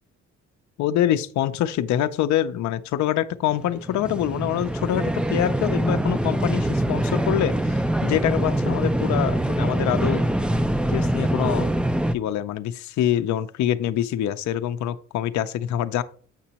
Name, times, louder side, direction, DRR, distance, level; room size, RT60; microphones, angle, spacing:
voice 1, 0.8-10.2 10.9-11.7 12.1-16.0, left 11 dB, 70° left, 10 dB, 0.5 m, -25 dB
sound 1, 3.5-12.1, right 1 dB, 5° right, 0.3 m, -24 dB
7.4 x 6.0 x 2.9 m, 0.43 s
cardioid pair, 90°, 30 cm